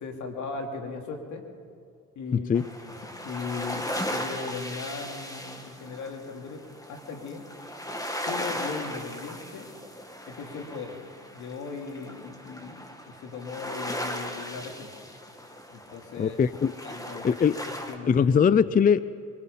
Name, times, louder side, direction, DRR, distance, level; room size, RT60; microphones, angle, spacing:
voice 1, 0.0-1.5 2.1-7.5 8.2-9.7 10.3-11.0 11.3-14.9 15.7-16.4 16.8-17.3 17.7-18.3, left 5 dB, 75° left, 3 dB, 2.9 m, -38 dB
voice 2, 2.3-2.7 16.2-16.7 17.2-17.6 18.1-19.0, left 7 dB, 30° left, 16 dB, 0.5 m, -21 dB
sound 1, 2.5-17.9, equal, 10° left, 2.4 m, -37 dB
24.0 x 22.0 x 5.6 m, 2.3 s
cardioid pair, 90°, 30 cm